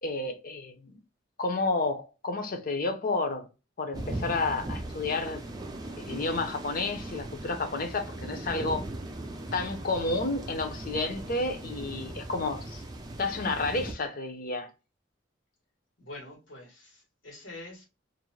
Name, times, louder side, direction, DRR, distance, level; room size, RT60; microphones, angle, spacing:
voice 1, 0.0-1.0 1.4-3.5 3.8-5.4 6.0-8.9 9.5-12.8 13.2-14.7, left 3 dB, 50° left, 0.6 m, -31 dB
sound 1, 3.9-13.9, right 1 dB, 20° right, 0.4 m, -39 dB
voice 2, 16.0-17.8, left 2 dB, 90° left, 1.3 m, -45 dB
2.5 x 2.1 x 3.0 m
head